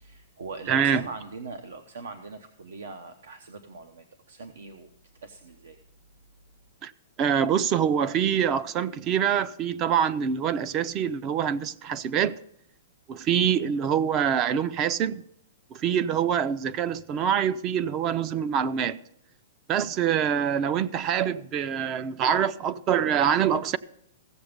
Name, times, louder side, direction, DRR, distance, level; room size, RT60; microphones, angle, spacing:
voice 1, 0.0-4.9 5.2-5.8, right 4 dB, 85° right, 0.9 m, -41 dB
voice 2, 0.7-1.0 6.8-6.9 7.2-12.4 13.1-15.2 15.7-19.0 19.7-23.8, right 8 dB, 20° right, 0.3 m, -25 dB
15.5 x 7.0 x 5.1 m
hypercardioid pair, 170°, 0 cm